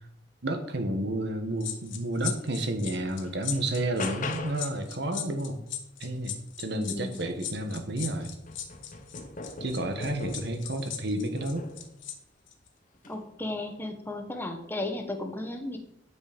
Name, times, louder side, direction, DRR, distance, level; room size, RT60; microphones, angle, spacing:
voice 1, 0.4-5.6 6.0-8.4 9.6-11.7, right 1 dB, 65° right, 6 dB, 1.4 m, -31 dB
sound 1, 1.6-12.1 12.5-12.7, left 10 dB, 85° left, 1.4 m, -38 dB
sound 2, 2.4-2.5 3.0-4.8 7.2-7.3 7.7-10.7 11.4-11.9 12.9-13.2, left 3 dB, 45° left, 1.0 m, -40 dB
voice 2, 6.7-7.2 13.1-15.8, left 2 dB, 10° left, 4 dB, 1.2 m, -34 dB
9.7 x 6.2 x 5.2 m, 0.77 s
head